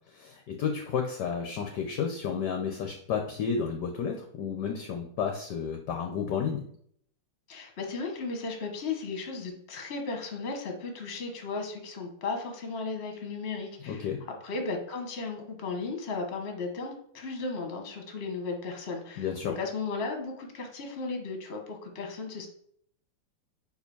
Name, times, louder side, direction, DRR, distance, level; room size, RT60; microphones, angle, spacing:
voice 1, 0.1-6.6 13.8-14.2 19.2-19.6, left 6 dB, 65° left, 3 dB, 1.1 m, -31 dB
voice 2, 7.5-14.1 14.4-22.5, left 4 dB, 35° left, 3 dB, 1.2 m, -35 dB
4.8 x 4.5 x 5.4 m, 0.65 s
omnidirectional pair, 2.4 m